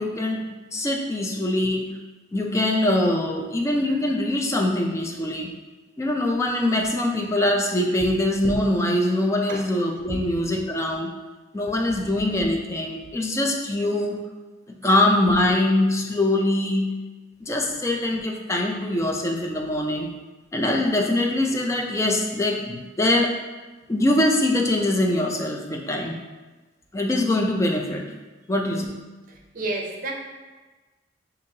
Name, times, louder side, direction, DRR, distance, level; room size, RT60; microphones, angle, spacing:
voice 1, 0.0-1.9 2.3-5.5 6.0-11.1 11.5-14.2 14.7-16.9 17.4-20.1 20.5-23.3 23.9-26.2 26.9-28.1 28.5-28.9, left 1 dB, 15° left, 1 dB, 0.4 m, -23 dB
voice 2, 29.3-30.1, right 2 dB, 50° right, 0 dB, 0.6 m, -30 dB
5.3 x 2.7 x 2.7 m, 1.2 s
head